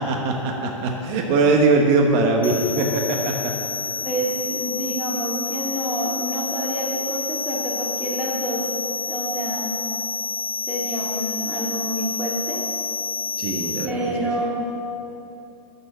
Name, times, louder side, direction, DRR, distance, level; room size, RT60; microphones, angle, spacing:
voice 1, 0.0-3.5 13.4-14.1, right 3 dB, 40° right, 2 dB, 1.3 m, -21 dB
sound 1, 2.4-13.9, left 5 dB, 85° left, 0.7 m, -29 dB
voice 2, 4.0-8.7 9.1-9.7 10.7-12.6 13.8-14.5, right 1 dB, 10° right, -4 dB, 2.5 m, -28 dB
13.0 x 6.9 x 7.3 m, 2.9 s
hypercardioid pair, 125°, 18 cm